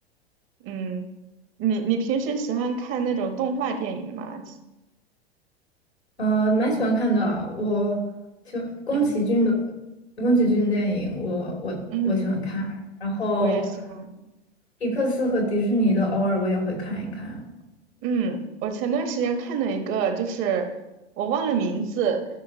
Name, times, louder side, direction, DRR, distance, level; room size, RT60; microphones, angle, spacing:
voice 1, 0.6-1.1 1.6-4.4 8.9-9.1 11.9-12.2 13.4-13.6 14.0-14.1 18.0-20.7 21.2-22.3, right 6 dB, 40° right, 6 dB, 1.3 m, -26 dB
voice 2, 6.2-8.0 8.5-9.5 10.2-12.7 13.0-13.6 14.8-17.4, right 1 dB, 90° left, -1 dB, 2.9 m, -24 dB
14.5 x 6.3 x 2.8 m, 1.0 s
figure-of-eight pair, 95°, 32 cm